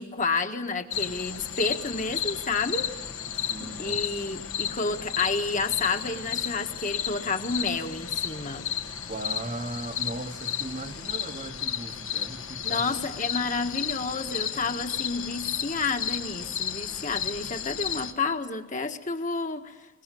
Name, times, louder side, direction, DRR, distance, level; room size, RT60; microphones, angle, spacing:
voice 1, 0.0-2.9 3.6-8.7 12.6-19.9, left 4 dB, 35° left, 1.6 m, -30 dB
sound 1, 0.9-18.1, left 8 dB, 70° left, 1.5 m, -33 dB
voice 2, 3.5-4.0 9.1-13.0, right 2 dB, 35° right, 1.1 m, -38 dB
22.0 x 21.5 x 7.7 m
head